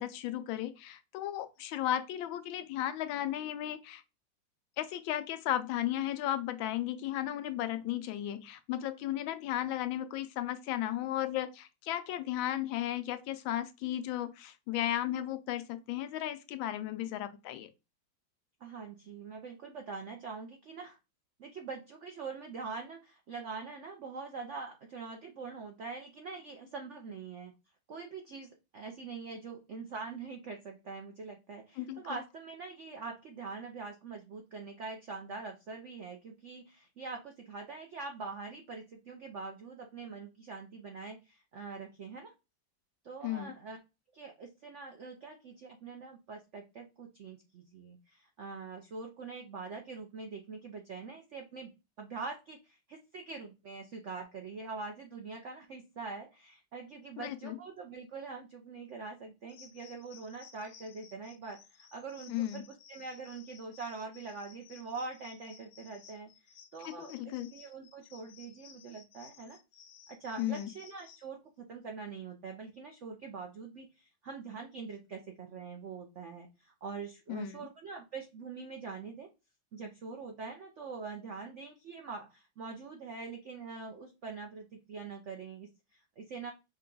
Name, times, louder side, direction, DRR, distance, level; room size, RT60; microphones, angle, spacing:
voice 1, 0.0-4.0 4.8-17.7 31.8-32.2 43.2-43.5 57.2-57.6 62.3-62.6 66.8-67.5 70.4-70.7 77.3-77.6, left 12 dB, 90° left, 1.4 m, -35 dB
voice 2, 18.6-21.0 21.4-27.5 27.9-42.3 43.0-43.8 44.1-51.7 52.0-66.3 66.7-69.6 70.1-79.3 79.7-86.5, right 4 dB, 75° right, 0.6 m, -44 dB
sound 1, 59.5-71.3, left 7 dB, 70° left, 1.3 m, -57 dB
5.6 x 2.3 x 3.8 m
omnidirectional pair, 2.1 m